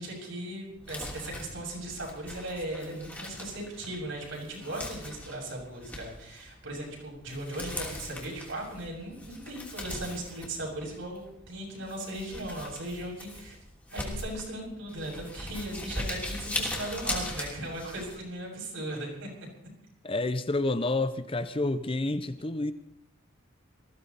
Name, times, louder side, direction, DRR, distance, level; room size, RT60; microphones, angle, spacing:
voice 1, 0.0-13.6 13.9-19.3, right 1 dB, 70° right, -2 dB, 6.7 m, -38 dB
Crumpling crinkling, 0.8-18.2, left 1 dB, 10° left, 3.1 m, -40 dB
voice 2, 20.0-22.7, left 2 dB, 25° left, 12 dB, 0.7 m, -29 dB
20.0 x 15.0 x 4.2 m, 0.74 s
head